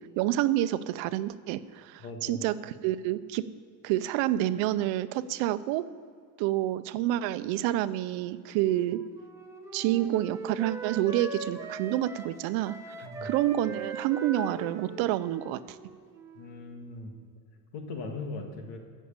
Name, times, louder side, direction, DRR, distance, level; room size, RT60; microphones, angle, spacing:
voice 1, 0.0-3.5 3.8-5.8 6.4-9.0 9.7-12.9 13.2-15.8, right 13 dB, 85° right, 14 dB, 0.7 m, -28 dB
voice 2, 2.0-2.4 13.0-13.3 16.3-17.1 17.7-18.8, left 3 dB, 65° left, 3 dB, 1.9 m, -39 dB
Wind instrument woodwind instrument, 8.6-16.6, right 3 dB, 5° right, 0.9 m, -41 dB
14.0 x 6.5 x 8.8 m, 2.1 s
cardioid pair, 175°, 45 cm